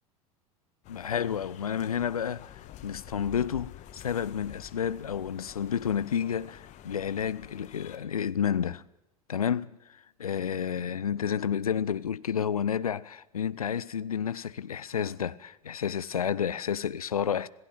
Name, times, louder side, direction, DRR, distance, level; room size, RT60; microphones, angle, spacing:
sound 1, 0.8-8.0, left 12 dB, 40° left, 1.9 m, -48 dB
voice 1, 0.9-8.8 9.3-17.5, left 8 dB, 75° left, 0.7 m, -30 dB
27.0 x 18.0 x 6.0 m
figure-of-eight pair, 80°, 19 cm